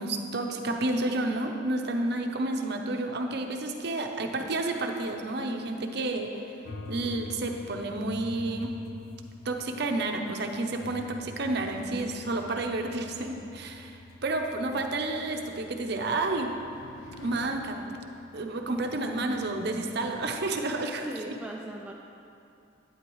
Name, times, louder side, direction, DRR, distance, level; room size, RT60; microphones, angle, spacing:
voice 1, 0.0-6.4 6.9-8.7 9.4-16.5 17.2-17.8 18.3-21.3, right 2 dB, 55° right, 3 dB, 0.7 m, -30 dB
sound 1, 6.6-20.9, left 3 dB, 80° left, 0.6 m, -47 dB
voice 2, 21.1-21.9, right 1 dB, 5° right, -1 dB, 0.3 m, -39 dB
11.5 x 9.4 x 3.1 m, 2.7 s
head